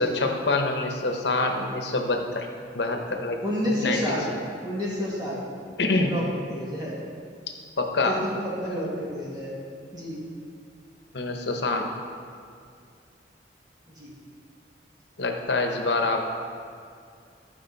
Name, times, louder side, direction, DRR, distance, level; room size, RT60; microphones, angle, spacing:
voice 1, 0.0-2.5 2.7-3.4 3.7-4.2 5.8-6.1 7.8-8.2 11.1-11.9 15.2-16.2, left 3 dB, 75° left, 4 dB, 1.0 m, -26 dB
voice 2, 3.4-4.3 4.6-5.4 6.1-6.2 6.5-7.0 8.0-9.6 9.9-10.2 13.9-14.1, equal, 25° right, -7 dB, 2.1 m, -30 dB
14.5 x 5.2 x 4.1 m, 2.3 s
head